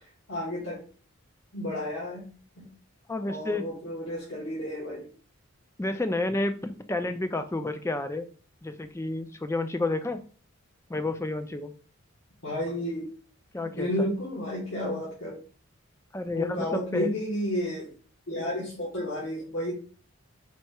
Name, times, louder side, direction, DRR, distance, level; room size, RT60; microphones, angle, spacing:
voice 1, 0.3-0.8 1.5-2.2 2.6-2.7 3.3-5.1 12.4-13.1 13.6-15.4 16.3-17.9 18.3-19.7, left 1 dB, 65° left, -6 dB, 1.4 m, -32 dB
voice 2, 3.1-3.7 5.8-8.3 8.6-10.2 10.9-11.7 13.5-14.1 16.1-17.2, left 2 dB, 10° left, 8 dB, 0.3 m, -30 dB
4.2 x 2.7 x 4.6 m, 0.39 s
head